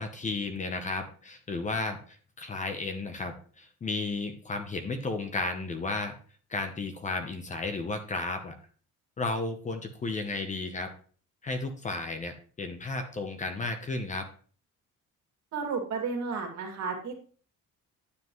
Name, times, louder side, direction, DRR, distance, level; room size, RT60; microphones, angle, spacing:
voice 1, 0.0-6.2 6.5-8.6 9.2-10.9 11.4-14.3, left 3 dB, 25° left, 6 dB, 0.8 m, -33 dB
voice 2, 15.5-17.1, right 5 dB, 60° right, 2 dB, 2.3 m, -32 dB
9.7 x 7.6 x 3.1 m, 0.43 s
cardioid pair, 180°, 31 cm